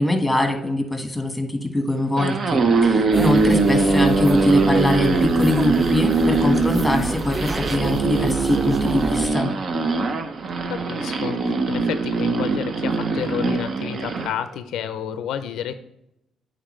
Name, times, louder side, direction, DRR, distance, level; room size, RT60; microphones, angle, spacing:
voice 1, 0.0-9.5, left 1 dB, 5° left, 5 dB, 1.4 m, -23 dB
Funny Farting, 2.0-14.3, right 3 dB, 50° right, 0.7 m, -21 dB
sound 1, 3.1-9.3, right 2 dB, 15° right, 0.3 m, -31 dB
voice 2, 10.7-15.7, left 9 dB, 80° left, 11 dB, 0.4 m, -30 dB
9.0 x 4.0 x 3.1 m, 0.85 s
cardioid pair, 90°, 0 cm